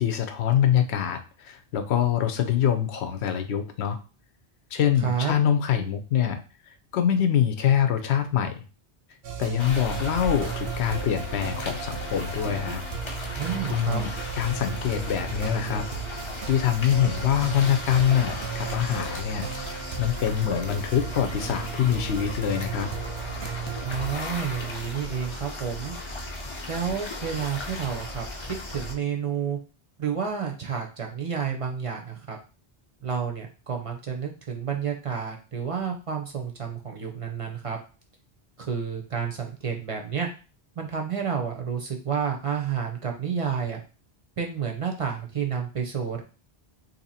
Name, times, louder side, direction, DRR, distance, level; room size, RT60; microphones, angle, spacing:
voice 1, 0.0-4.0 4.7-6.4 6.9-8.6 9.4-12.8 13.2-13.3 13.6-15.8 16.5-22.9, left 9 dB, 90° left, 7 dB, 0.9 m, -25 dB
voice 2, 5.0-5.3 13.4-14.0 23.8-25.9 26.7-29.6 30.0-32.4 33.0-37.8 38.6-40.3 40.8-43.8 44.4-46.2, right 7 dB, 40° right, 2 dB, 0.5 m, -30 dB
sound 1, 9.2-24.1, right 8 dB, 85° right, 0.9 m, -36 dB
sound 2, 9.6-28.9, left 2 dB, 35° left, 0.5 m, -36 dB
2.8 x 2.7 x 4.1 m, 0.34 s
omnidirectional pair, 1.1 m